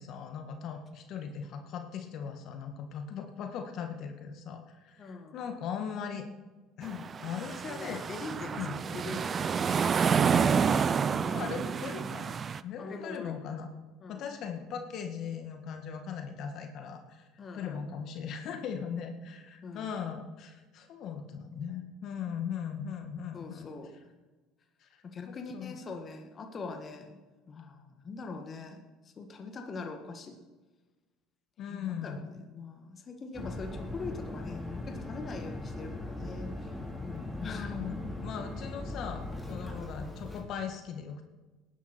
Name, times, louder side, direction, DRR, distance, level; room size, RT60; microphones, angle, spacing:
voice 1, 0.0-6.2 6.8-8.0 8.6-8.8 10.4-12.4 12.6-13.7 14.1-17.3 17.5-23.7 24.8-24.9 25.2-25.8 31.6-32.2 37.4-41.2, left 7 dB, 60° left, 5 dB, 1.7 m, -39 dB
voice 2, 5.0-5.4 7.5-9.5 12.8-13.4 14.0-14.3 17.4-17.8 19.6-19.9 23.3-23.9 25.0-27.2 27.5-30.4 31.7-36.8 37.1-37.9, left 4 dB, 35° left, 4 dB, 1.7 m, -42 dB
sound 1, 6.8-12.6, right 6 dB, 35° right, 0.5 m, -29 dB
sound 2, 33.3-40.4, left 2 dB, 10° left, 3.7 m, -39 dB
18.5 x 11.0 x 4.5 m, 1.2 s
supercardioid pair, 85°, 0 cm